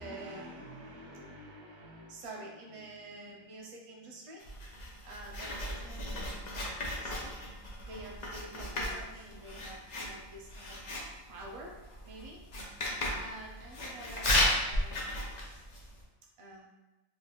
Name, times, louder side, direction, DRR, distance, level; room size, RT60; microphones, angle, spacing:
voice 1, 0.0-4.4 5.0-7.5 7.8-10.8 11.3-11.7 12.0-15.1 16.4-16.7, right 1 dB, 40° right, -1 dB, 0.5 m, -48 dB
Writing, 4.4-16.0, left 1 dB, 45° left, 0.7 m, -35 dB
3.7 x 3.2 x 2.3 m, 1.1 s
omnidirectional pair, 1.2 m